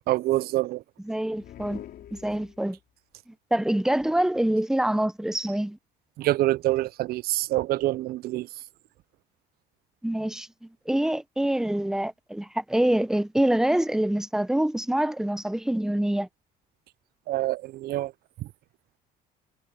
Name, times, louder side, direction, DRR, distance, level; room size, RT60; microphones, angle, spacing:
voice 1, 0.1-0.8 6.2-8.5 17.3-18.1 18.4-18.5, right 16 dB, 65° right, 0.4 m, -26 dB
voice 2, 1.0-1.8 2.1-2.8 3.3-5.8 10.0-16.3, right 1 dB, 5° right, 0.9 m, -26 dB
sound 1, 1.3-2.9, left 11 dB, 65° left, 4.1 m, -45 dB
cardioid pair, 110°, 17 cm